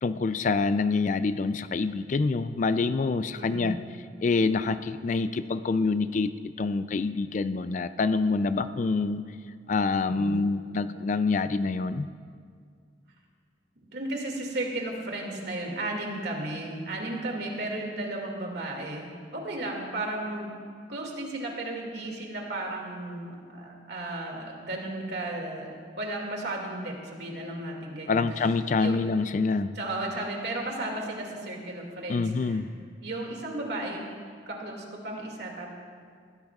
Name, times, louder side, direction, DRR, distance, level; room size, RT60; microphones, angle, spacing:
voice 1, 0.0-3.8 4.2-9.2 9.7-12.1 28.1-29.7 32.1-32.7, left 4 dB, 40° left, 12 dB, 0.3 m, -26 dB
voice 2, 3.4-3.7 10.0-10.4 13.9-20.5 20.9-28.3 28.8-29.0 29.8-32.6 33.0-34.1 34.5-35.8, right 2 dB, 55° right, 0 dB, 2.3 m, -34 dB
21.0 x 15.5 x 2.4 m, 2.1 s
head